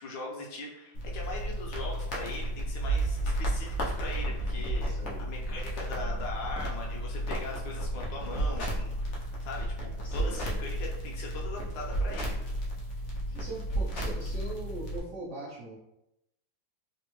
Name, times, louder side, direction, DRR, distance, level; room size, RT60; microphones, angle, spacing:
voice 1, 0.0-4.9 5.2-12.5, left 2 dB, 75° left, -2 dB, 1.3 m, -40 dB
sound 1, 0.9-15.0, right 1 dB, 90° left, 0.6 m, -32 dB
voice 2, 4.8-5.3 10.0-10.5 13.3-15.8, right 2 dB, 80° right, -5 dB, 0.6 m, -41 dB
3.5 x 2.1 x 3.0 m, 0.86 s
omnidirectional pair, 2.1 m